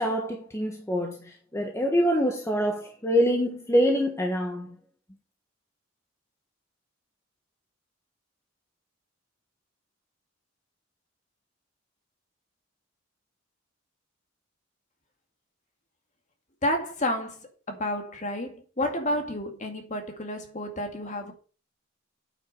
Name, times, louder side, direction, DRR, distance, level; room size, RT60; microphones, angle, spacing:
voice 1, 0.0-4.7, equal, 15° left, 1.4 m, -25 dB
voice 2, 16.6-21.3, left 1 dB, 35° left, 2.2 m, -30 dB
9.0 x 8.3 x 5.4 m
head